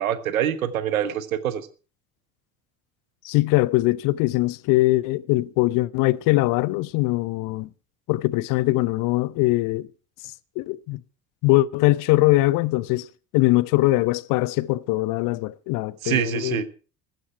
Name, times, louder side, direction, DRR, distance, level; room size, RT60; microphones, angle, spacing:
voice 1, 0.0-1.7 16.0-16.6, right 10 dB, 75° right, 1.4 m, -25 dB
voice 2, 3.2-7.7 8.1-9.9 10.6-11.0 11.4-13.1 13.3-16.6, left 19 dB, 50° left, 0.8 m, -21 dB
15.5 x 14.5 x 4.5 m
figure-of-eight pair, 60°, 42 cm